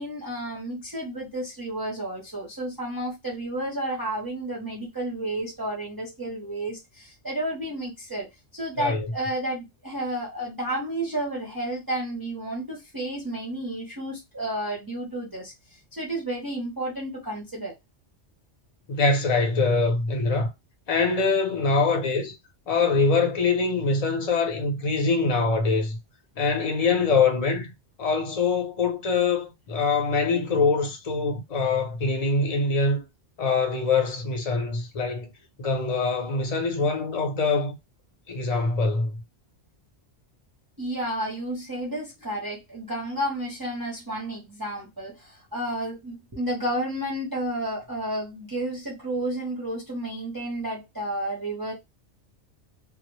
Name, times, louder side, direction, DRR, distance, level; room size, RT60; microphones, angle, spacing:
voice 1, 0.0-17.7 40.8-51.7, right 1 dB, 25° right, 0.5 m, -31 dB
voice 2, 18.9-20.5 20.9-22.4 22.7-26.0 26.4-27.7 28.0-33.0 33.4-35.3 35.6-37.7 38.3-39.2, left 4 dB, 40° left, 0.6 m, -24 dB
2.0 x 2.0 x 3.0 m
omnidirectional pair, 1.2 m